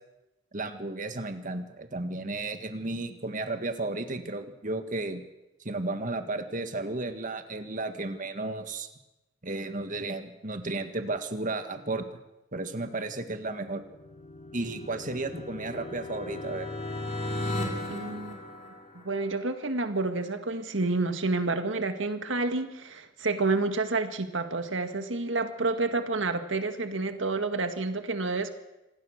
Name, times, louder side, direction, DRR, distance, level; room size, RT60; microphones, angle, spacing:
voice 1, 0.5-5.2 5.6-8.9 9.4-12.2 12.5-13.8 14.5-16.7, right 2 dB, 45° right, 8 dB, 1.8 m, -33 dB
sound 1, 13.6-19.4, left 1 dB, 40° left, 5.6 m, -36 dB
voice 2, 17.9-18.4 19.0-28.5, right 3 dB, 90° right, 8 dB, 1.8 m, -29 dB
26.5 x 19.0 x 6.6 m, 0.97 s
head